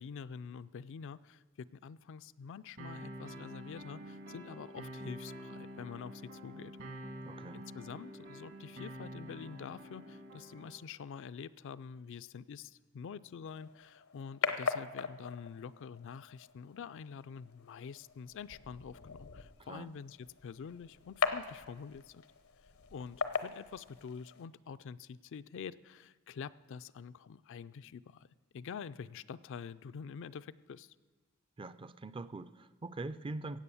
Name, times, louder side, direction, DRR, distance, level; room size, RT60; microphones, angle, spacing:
voice 1, 0.0-6.7 7.5-22.2 22.9-28.3 28.5-31.0, left 6 dB, 60° left, 14 dB, 0.4 m, -46 dB
sound 1, 2.8-10.8, equal, 60° right, 1.5 m, -47 dB
voice 2, 7.2-7.6 19.7-19.9 31.6-33.6, right 2 dB, 25° right, 15 dB, 0.4 m, -43 dB
sound 2, 13.5-24.4, left 5 dB, 85° left, 0.8 m, -40 dB
15.5 x 8.3 x 7.0 m, 1.4 s
head